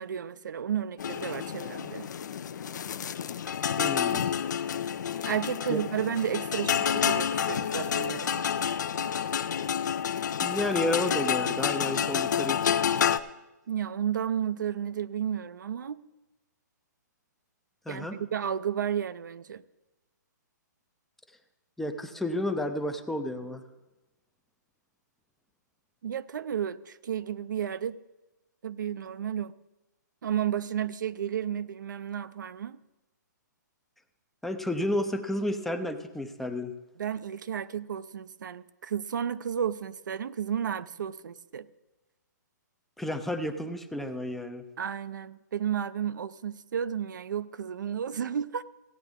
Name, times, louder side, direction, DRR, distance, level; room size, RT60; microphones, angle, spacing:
voice 1, 0.0-2.1 5.2-8.4 13.7-16.0 17.9-19.6 26.0-28.0 28.6-29.5 30.2-32.8 37.0-41.7 44.8-48.6, right 9 dB, 80° right, 0.5 m, -32 dB
sound 1, 1.0-13.2, left 8 dB, 70° left, 0.6 m, -29 dB
voice 2, 3.8-4.3 5.7-5.8 10.4-12.8 17.9-18.2 21.8-23.6 34.4-36.7 43.0-44.6, left 1 dB, ahead, 0.5 m, -31 dB
16.0 x 9.2 x 3.6 m
hypercardioid pair, 160°, 10 cm